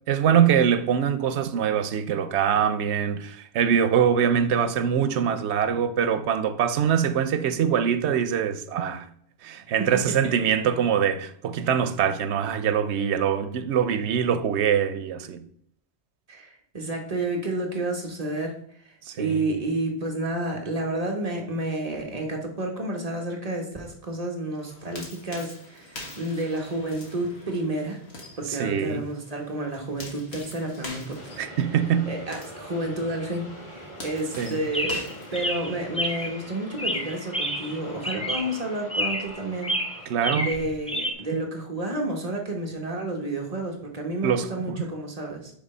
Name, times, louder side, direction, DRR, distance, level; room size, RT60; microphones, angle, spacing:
voice 1, 0.1-9.1 9.4-15.4 19.1-19.4 28.5-29.0 31.4-32.1 34.4-34.6 40.1-40.5 41.3-41.4 44.2-44.8, right 8 dB, 90° right, 0.9 m, -23 dB
voice 2, 16.3-18.6 19.2-28.0 28.4-31.2 32.1-39.7 40.0-45.5, right 2 dB, 35° right, 1.3 m, -30 dB
sound 1, 24.6-36.0, left 1 dB, 75° left, 1.8 m, -44 dB
sound 2, 31.1-41.4, equal, 40° left, 1.8 m, -44 dB
Chirp tweet, 34.7-36.4 36.8-37.8 38.0-38.6 38.9-39.4 39.6-41.1, equal, 5° left, 0.7 m, -29 dB
6.1 x 3.4 x 5.4 m
omnidirectional pair, 1.1 m